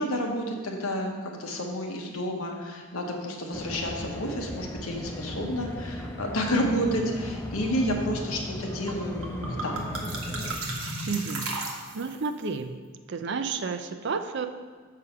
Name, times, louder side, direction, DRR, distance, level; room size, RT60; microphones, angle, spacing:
voice 1, 0.0-9.8, equal, 80° left, 1 dB, 1.1 m, -30 dB
sound 1, 3.5-10.6, left 1 dB, 10° left, 0.4 m, -37 dB
sound 2, 8.9-9.0 9.2-12.3, right 2 dB, 80° right, 1.1 m, -34 dB
voice 2, 11.1-11.5 11.9-12.7 13.1-14.5, right 4 dB, 50° right, 8 dB, 0.5 m, -31 dB
6.8 x 4.8 x 5.8 m, 1.5 s
head